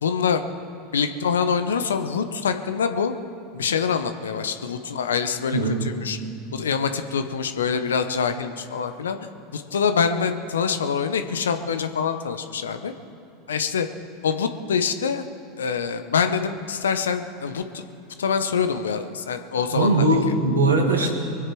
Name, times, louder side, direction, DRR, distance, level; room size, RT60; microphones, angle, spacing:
voice 1, 0.0-0.4 0.9-3.1 3.5-6.2 6.5-9.2 9.5-12.9 13.5-13.9 14.2-15.2 15.6-17.8 18.2-20.0 21.0-21.1, left 6 dB, 80° left, 9 dB, 0.9 m, -25 dB
voice 2, 5.5-5.9 19.7-21.1, right 2 dB, 85° right, 1 dB, 2.0 m, -20 dB
23.0 x 8.0 x 6.1 m, 2.6 s
figure-of-eight pair, 80°, 0 cm